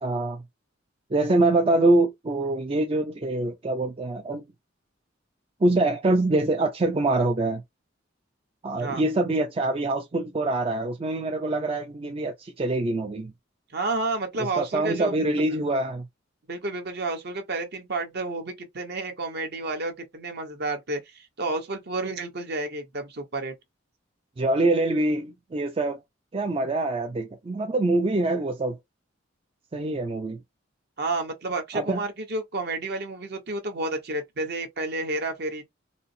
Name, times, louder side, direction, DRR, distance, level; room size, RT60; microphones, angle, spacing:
voice 1, 0.0-0.4 1.1-4.4 5.6-7.6 8.6-13.3 14.4-16.1 24.4-26.0 26.3-28.8 29.7-30.4 31.7-32.0, right 2 dB, 30° right, 0.5 m, -24 dB
voice 2, 13.7-15.1 16.5-23.5 31.0-35.6, right 2 dB, 55° right, 1.0 m, -30 dB
4.1 x 2.0 x 2.6 m
head